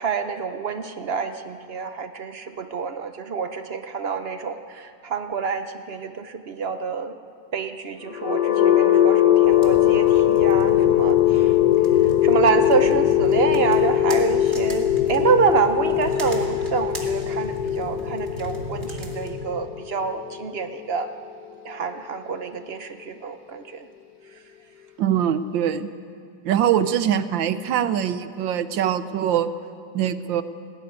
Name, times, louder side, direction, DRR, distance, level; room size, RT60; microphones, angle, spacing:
voice 1, 0.0-7.2 7.5-11.5 12.2-21.1 21.6-23.9 27.1-27.2, right 5 dB, 90° right, 8 dB, 0.5 m, -27 dB
sound 1, 8.1-22.0, left 12 dB, 60° left, 1.5 m, -20 dB
sound 2, 9.4-19.3, equal, 30° right, 2.7 m, -35 dB
voice 2, 25.0-25.9 26.4-29.5 29.9-30.4, right 9 dB, 70° right, 13 dB, 1.5 m, -23 dB
19.5 x 17.0 x 9.5 m, 2.3 s
omnidirectional pair, 2.2 m